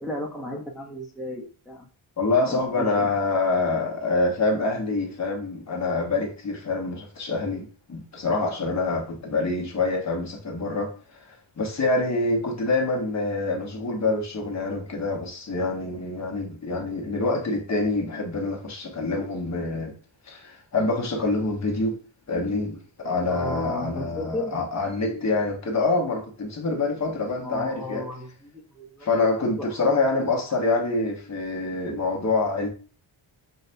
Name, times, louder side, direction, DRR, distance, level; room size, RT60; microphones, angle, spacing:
voice 1, 0.0-1.9 2.4-3.1 23.3-24.7 27.4-29.1 29.6-30.0, left 1 dB, ahead, 0.4 m, -34 dB
voice 2, 2.2-19.9 20.3-22.0 22.3-28.1 29.0-32.7, left 3 dB, 35° left, 0.8 m, -26 dB
6.5 x 2.2 x 2.5 m
wide cardioid pair, 165°, 48 cm